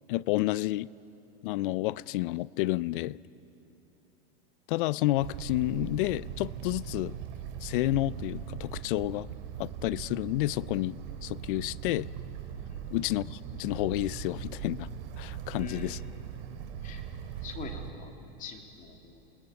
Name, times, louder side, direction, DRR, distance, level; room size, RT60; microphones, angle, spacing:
voice 1, 0.1-0.9 1.4-3.2 4.7-7.2 7.6-9.3 9.6-11.0 11.2-12.1 12.9-14.9 15.2-16.0, left 17 dB, 60° left, 0.6 m, -30 dB
sound 1, 5.2-17.9, right 8 dB, 65° right, 3.1 m, -40 dB
voice 2, 15.5-16.0 16.8-17.0 17.4-18.1 18.4-19.3, left 5 dB, 25° left, 2.9 m, -44 dB
28.0 x 19.5 x 9.5 m
supercardioid pair, 150°, 30 cm